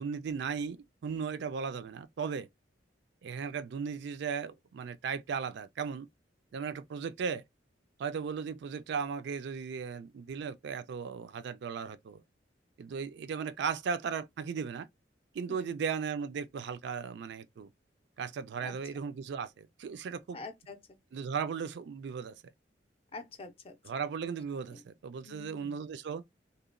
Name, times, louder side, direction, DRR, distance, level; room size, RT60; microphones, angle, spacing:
voice 1, 0.0-2.5 3.2-6.1 6.5-7.4 8.0-12.2 12.8-14.9 15.3-17.7 18.2-20.4 21.1-22.4 23.9-26.2, right 6 dB, 65° right, 0.3 m, -36 dB
voice 2, 20.3-20.8 23.1-23.8 24.7-24.8 25.2-25.8, left 3 dB, 30° left, 0.5 m, -46 dB
2.9 x 2.1 x 2.4 m
head